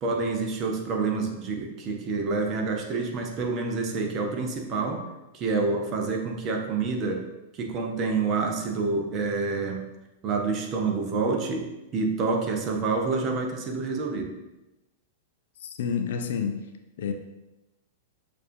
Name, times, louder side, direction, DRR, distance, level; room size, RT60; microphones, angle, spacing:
voice 1, 0.0-5.0 5.3-7.2 7.5-9.8 10.2-14.3, right 4 dB, 35° right, 2 dB, 0.7 m, -28 dB
voice 2, 15.6-16.6 17.0-17.1, left 7 dB, 60° left, 5 dB, 0.4 m, -29 dB
6.4 x 2.5 x 2.6 m, 1.0 s
figure-of-eight pair, 100°, 0 cm